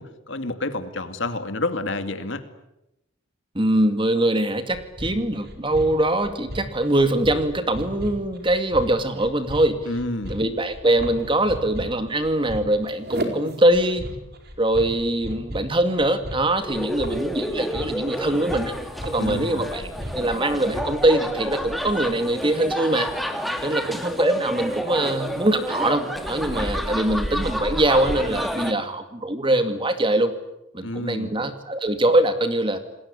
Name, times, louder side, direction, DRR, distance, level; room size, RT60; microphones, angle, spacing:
voice 1, 0.0-2.4 9.9-10.4 19.2-19.8 30.8-31.4, left 2 dB, 60° left, 9 dB, 2.4 m, -29 dB
voice 2, 3.5-9.8 10.3-14.0 14.6-18.7 19.0-19.8 20.1-23.1 23.6-30.3 30.7-32.8, right 1 dB, 25° right, 9 dB, 2.2 m, -22 dB
sound 1, 4.7-21.1, right 1 dB, 50° right, 4.3 m, -35 dB
sound 2, 16.6-28.7, equal, ahead, 2.4 m, -29 dB
28.0 x 20.5 x 9.9 m, 0.89 s
head